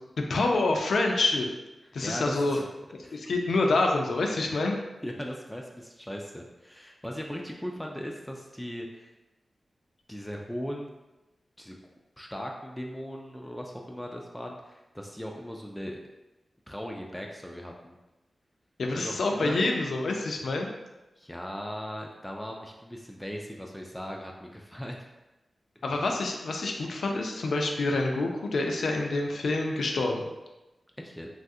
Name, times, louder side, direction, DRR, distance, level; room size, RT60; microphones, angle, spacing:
voice 1, 0.2-1.5 1.9-2.6 3.1-4.8 18.8-20.7 25.8-30.2, left 2 dB, 80° left, 2 dB, 0.4 m, -27 dB
voice 2, 2.0-2.7 3.0-3.2 5.0-9.1 10.1-10.9 11.6-11.8 12.2-16.0 16.7-18.0 18.9-19.7 21.2-25.0 31.0-31.3, equal, 5° left, 0 dB, 0.3 m, -38 dB
3.1 x 2.4 x 2.6 m, 1.0 s
cardioid pair, 70°, 0 cm